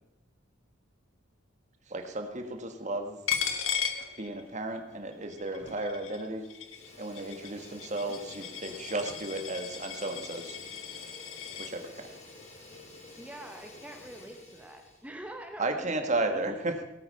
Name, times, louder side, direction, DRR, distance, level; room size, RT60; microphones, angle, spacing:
voice 1, 1.9-3.2 4.2-6.4 7.0-10.6 11.6-12.1 15.6-16.7, right 2 dB, 35° right, 5 dB, 1.6 m, -34 dB
Coin (dropping), 3.3-4.8 5.1-11.7, left 8 dB, 85° left, 1.5 m, -36 dB
Fire, 5.5-6.0 6.3-15.1, left 2 dB, 35° left, 2.9 m, -50 dB
voice 2, 13.2-15.9 16.3-16.8, right 1 dB, 5° right, 3 dB, 1.0 m, -45 dB
17.5 x 8.4 x 5.6 m, 0.96 s
head